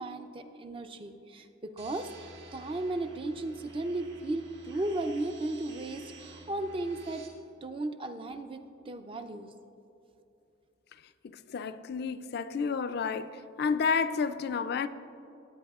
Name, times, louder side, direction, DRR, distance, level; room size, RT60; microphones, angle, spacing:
voice 1, 0.0-7.3 7.6-8.6 8.9-9.5, right 2 dB, 25° right, 0.4 m, -35 dB
sound 1, 1.8-7.3, right 2 dB, 55° right, 2.0 m, -51 dB
voice 2, 11.2-13.3 13.6-14.9, left 5 dB, 50° left, 0.3 m, -30 dB
18.5 x 8.6 x 2.4 m
head